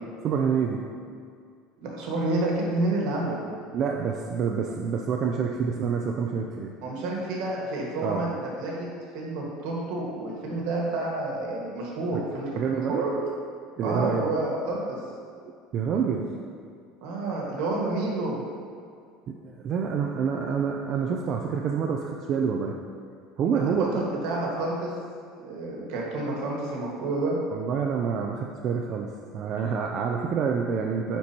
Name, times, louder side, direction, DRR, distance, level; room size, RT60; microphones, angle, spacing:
voice 1, 0.2-0.8 3.7-6.7 8.0-8.2 12.1-12.2 12.5-13.0 13.8-14.3 15.4-16.3 19.4-22.7 23.4-24.0 27.5-31.2, right 6 dB, 35° right, 0 dB, 0.3 m, -27 dB
voice 2, 1.8-3.4 6.8-8.9 9.1-13.1 13.8-15.0 17.0-18.4 23.5-24.9 25.4-27.4, right 2 dB, 65° right, -2 dB, 1.4 m, -29 dB
9.5 x 4.4 x 2.8 m, 2.2 s
cardioid pair, 170°, 0 cm